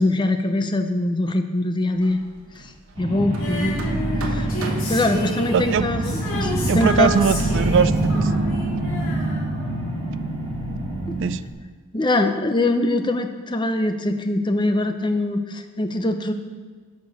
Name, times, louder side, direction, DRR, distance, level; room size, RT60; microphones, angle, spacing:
voice 1, 0.0-2.2 2.6-2.7 3.0-3.8 4.2-4.5 4.9-7.1 11.1-11.2 11.9-16.3, left 2 dB, 20° left, 7 dB, 0.6 m, -23 dB
Hammer, 1.9-8.8, right 2 dB, 75° right, 1.1 m, -41 dB
sound 1, 2.9-11.3, right 1 dB, 30° right, 3.5 m, -25 dB
Female singing, 3.4-10.3 11.5-11.6, left 1 dB, 75° left, 2.6 m, -31 dB
voice 2, 5.5-5.9 6.6-8.3 11.2-11.4, right 7 dB, 60° right, 15 dB, 0.3 m, -21 dB
11.0 x 5.2 x 6.8 m, 1.4 s
head